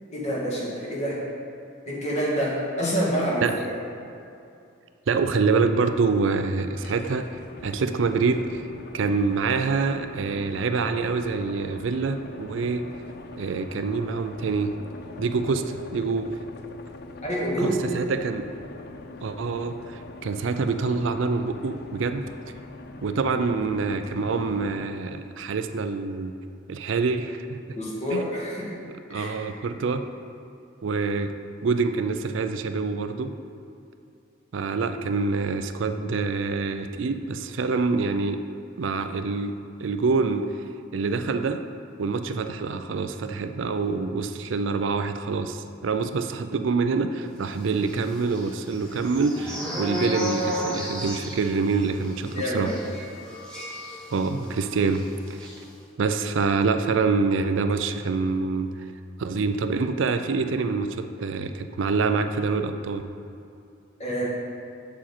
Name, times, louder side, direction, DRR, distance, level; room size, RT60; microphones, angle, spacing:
voice 1, 0.1-1.2 1.9-3.5 17.2-18.0 27.8-28.8 29.1-29.5 52.3-52.7 64.0-64.3, equal, 35° left, -5 dB, 1.8 m, -27 dB
voice 2, 5.1-8.6 8.9-12.9 13.4-14.7 15.2-16.3 17.6-18.5 19.2-22.2 23.0-26.3 26.7-27.8 28.1-28.3 28.8-30.0 30.8-31.3 31.6-33.3 34.5-38.4 38.8-40.5 40.9-41.6 42.0-52.7 54.1-55.0 55.3-55.5 56.0-58.7 59.2-63.0, right 4 dB, 70° right, 8 dB, 0.4 m, -26 dB
sound 1, 6.7-24.9, left 3 dB, 50° left, 0.4 m, -42 dB
sound 2, 47.8-54.5 54.8-55.0 55.3-55.6, equal, 5° left, 1.4 m, -33 dB
7.5 x 7.3 x 4.3 m, 2.6 s
head